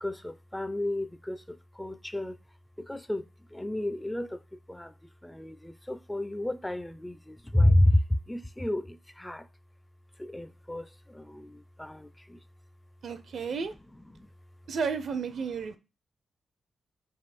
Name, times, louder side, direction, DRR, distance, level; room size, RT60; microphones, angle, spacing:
voice 1, 0.0-2.4 2.8-3.2 3.5-4.9 5.2-8.0 8.3-9.5 10.2-12.4 14.1-14.3, left 1 dB, 10° left, 0.5 m, -30 dB
voice 2, 13.0-13.7 14.7-15.8, right 5 dB, 70° right, 0.5 m, -32 dB
3.6 x 2.4 x 4.2 m
supercardioid pair, 40°, 0 cm